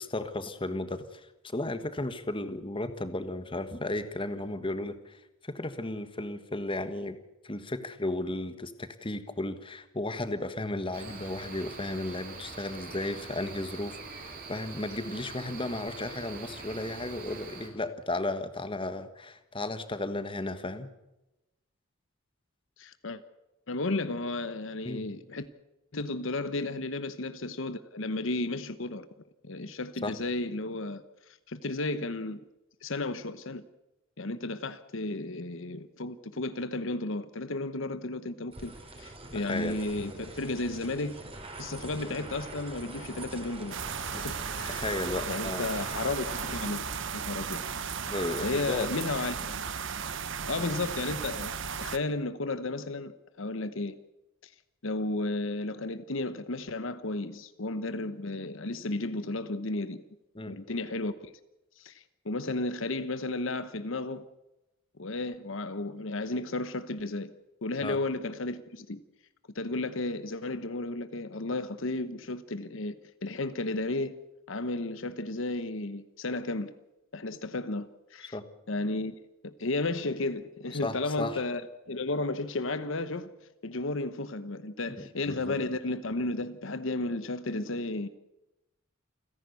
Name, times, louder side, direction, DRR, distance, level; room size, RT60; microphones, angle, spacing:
voice 1, 0.0-7.2 7.4-20.9 24.8-25.1 30.0-30.1 39.3-39.8 44.7-45.7 48.1-48.9 60.3-60.6 67.8-68.0 78.3-78.4 80.7-81.4 85.0-85.6, left 2 dB, 25° left, 1.5 m, -34 dB
Cricket, 10.9-17.7, right 3 dB, 45° right, 4.9 m, -44 dB
voice 2, 22.8-23.2 23.7-25.5 25.9-29.1 29.4-32.4 32.8-33.6 34.2-38.7 39.0-41.2 41.6-43.8 44.1-44.9 45.3-46.9 47.1-47.6 48.4-49.6 50.4-51.5 51.8-53.1 53.4-54.0 54.4-54.5 54.8-60.0 60.5-61.3 61.8-64.2 65.0-67.3 67.6-69.0 69.5-73.0 73.2-74.2 74.5-76.7 77.1-78.4 78.7-79.1 79.4-81.6 81.9-83.3 83.6-88.1, left 2 dB, 65° left, 1.0 m, -33 dB
sound 1, 38.5-48.5, right 2 dB, 30° right, 4.8 m, -44 dB
sound 2, 43.7-52.0, right 6 dB, 65° right, 1.2 m, -35 dB
29.0 x 11.0 x 8.3 m
head